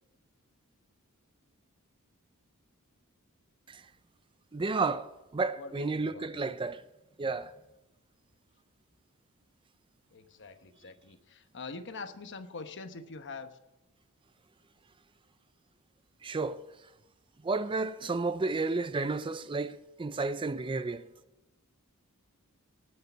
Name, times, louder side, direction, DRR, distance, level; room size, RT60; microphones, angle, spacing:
voice 1, 4.5-6.8 7.2-7.5 16.2-16.6 17.4-21.1, right 3 dB, 20° right, 0.4 m, -32 dB
voice 2, 5.6-6.4 10.1-13.5, left 3 dB, 55° left, 1.1 m, -44 dB
19.5 x 6.7 x 5.6 m
head